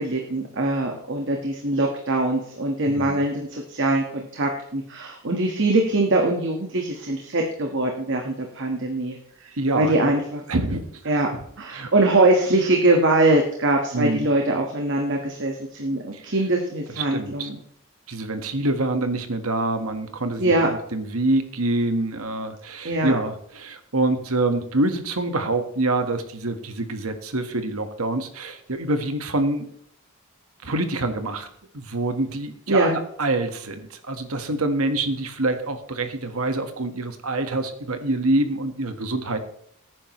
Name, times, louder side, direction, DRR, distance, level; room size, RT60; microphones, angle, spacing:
voice 1, 0.0-9.2 9.7-10.4 11.1-11.3 11.6-15.5 15.8-17.6 20.4-20.7 22.8-23.1 32.7-33.0, right 2 dB, 55° right, 2 dB, 1.6 m, -22 dB
voice 2, 2.8-3.2 9.5-10.1 10.5-11.9 13.9-14.3 16.1-16.3 16.9-17.5 18.1-29.7 30.6-31.5 31.7-39.4, right 2 dB, 75° right, 8 dB, 1.6 m, -26 dB
17.5 x 9.7 x 3.2 m, 0.68 s
head